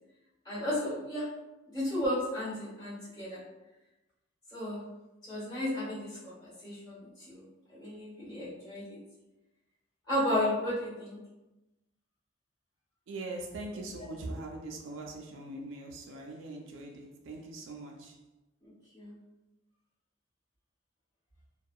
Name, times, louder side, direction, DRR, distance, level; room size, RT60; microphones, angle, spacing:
voice 1, 0.4-1.3 1.6-3.4 4.5-4.8 5.2-9.0 10.1-11.2 18.6-19.1, left 1 dB, 20° left, -8 dB, 1.3 m, -34 dB
voice 2, 13.1-18.2, right 2 dB, 75° right, 2 dB, 0.4 m, -41 dB
2.7 x 2.2 x 2.2 m, 1.0 s
head